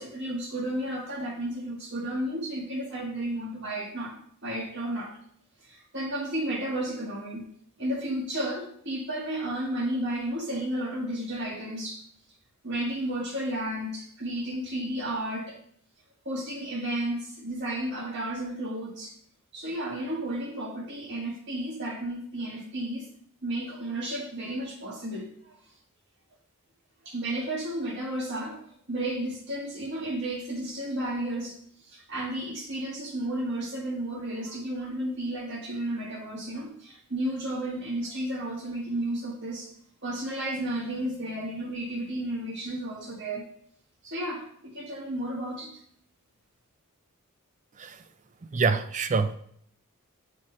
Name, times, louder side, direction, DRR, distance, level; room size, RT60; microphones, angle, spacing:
voice 1, 0.0-5.2 5.6-7.5 7.8-12.0 12.6-15.6 16.2-19.1 19.5-23.1 23.4-25.3 27.0-31.6 31.8-39.7 40.0-43.5 44.0-45.7, right 1 dB, 55° right, 1.6 m, -32 dB
voice 2, 48.5-49.3, right 4 dB, 35° right, 0.4 m, -26 dB
6.4 x 3.9 x 4.3 m
head